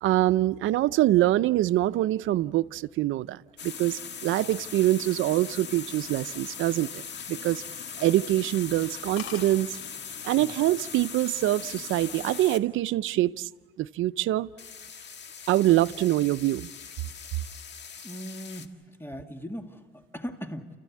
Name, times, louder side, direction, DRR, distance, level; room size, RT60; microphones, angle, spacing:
voice 1, 0.0-7.0 7.3-7.6 8.0-9.7 10.2-13.5 13.8-14.5 15.5-16.7, right 15 dB, 80° right, 0.6 m, -24 dB
sound 1, 3.6-12.6 14.6-18.7, left 6 dB, 60° left, 1.7 m, -40 dB
sound 2, 7.1-7.7 8.1-8.3 8.6-8.7 8.9-9.0 9.2-9.5 10.4-10.7 11.1-11.5, left 6 dB, 90° left, 3.3 m, -43 dB
voice 2, 18.0-19.8 20.1-20.7, equal, 10° left, 2.0 m, -38 dB
30.0 x 14.5 x 8.5 m
cardioid pair, 90°, 20 cm